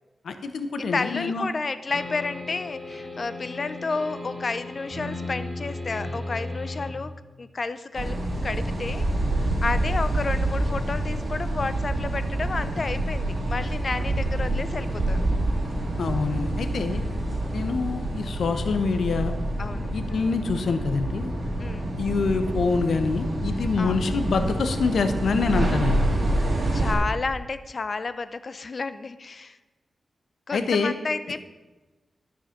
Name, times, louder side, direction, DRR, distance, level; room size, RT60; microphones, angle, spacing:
voice 1, 0.2-1.5 16.0-17.0 17.5-19.3 19.9-21.3 22.0-26.0 30.5-30.9, left 4 dB, 80° left, 8 dB, 0.9 m, -25 dB
voice 2, 0.8-7.1 7.4-9.1 9.6-15.3 16.9-17.4 19.6-19.9 21.6-21.9 23.8-24.0 26.7-29.6 30.5-31.4, left 4 dB, 45° left, 13 dB, 0.5 m, -31 dB
sound 1, 1.9-6.9, left 2 dB, 30° right, 3.5 m, -35 dB
sound 2, 7.9-26.9, right 1 dB, 50° right, 2.4 m, -27 dB
12.5 x 5.6 x 5.8 m, 1.2 s
wide cardioid pair, 110°, 0 cm